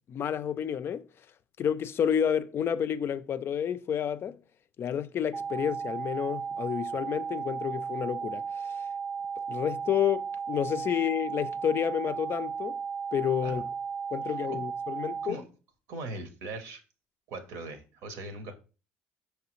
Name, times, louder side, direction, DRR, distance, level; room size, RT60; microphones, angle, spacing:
voice 1, 0.1-1.1 1.6-4.4 4.8-8.7 9.5-12.8 13.1-13.6 14.1-15.4, left 9 dB, 45° left, 0.3 m, -30 dB
sound 1, 5.3-15.3, right 6 dB, 20° right, 0.4 m, -35 dB
voice 2, 14.3-14.6 15.0-15.5 15.9-16.8 17.3-18.5, right 2 dB, 70° right, 0.9 m, -40 dB
5.4 x 3.1 x 3.0 m
hypercardioid pair, 70°, 5 cm